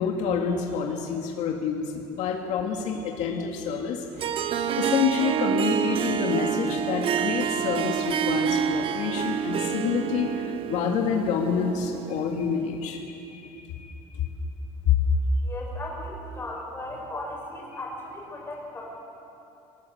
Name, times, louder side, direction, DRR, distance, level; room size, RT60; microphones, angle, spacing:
voice 1, 0.0-4.1 4.7-13.4 13.7-14.3 14.8-15.0, left 6 dB, 70° left, 1 dB, 2.2 m, -27 dB
Harp, 4.2-12.6, right 8 dB, 45° right, 0.9 m, -28 dB
voice 2, 15.4-18.8, left 1 dB, 20° left, -2 dB, 6.6 m, -37 dB
22.5 x 18.5 x 8.0 m, 2.8 s
cardioid pair, 140°, 13 cm